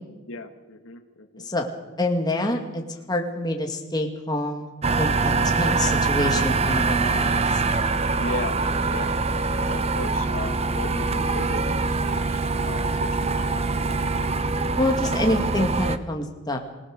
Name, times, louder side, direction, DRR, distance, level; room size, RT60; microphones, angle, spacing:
voice 1, 0.3-1.5 8.1-9.1 9.7-14.0, left 2 dB, 75° left, 7 dB, 1.7 m, -37 dB
voice 2, 2.0-2.8 3.1-7.6 14.8-16.6, left 1 dB, 20° left, 2 dB, 2.1 m, -26 dB
sound 1, 4.8-16.0, right 3 dB, 30° right, 0.7 m, -24 dB
26.5 x 18.0 x 6.6 m, 1.2 s
head